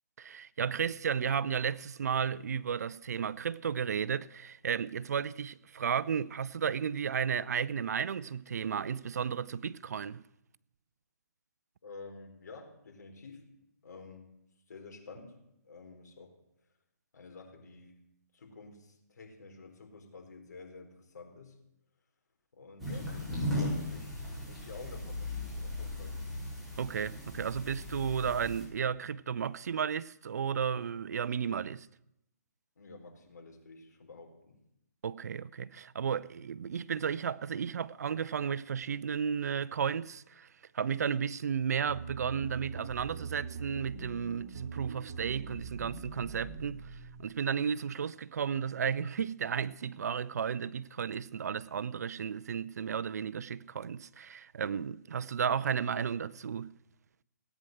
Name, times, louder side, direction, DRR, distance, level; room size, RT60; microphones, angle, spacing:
voice 1, 0.2-10.2 26.8-31.9 35.0-56.7, right 7 dB, 65° right, 0.6 m, -33 dB
voice 2, 11.8-13.4 13.8-14.3 14.7-15.4 15.6-16.3 17.1-17.9 18.3-21.6 22.5-26.1 32.8-34.6, left 3 dB, 65° left, 4.3 m, -50 dB
sound 1, 22.8-28.6, left 1 dB, ahead, 5.8 m, -37 dB
sound 2, 41.9-47.2, right 5 dB, 45° right, 3.6 m, -42 dB
17.5 x 9.2 x 7.8 m
hypercardioid pair, 145°, 10 cm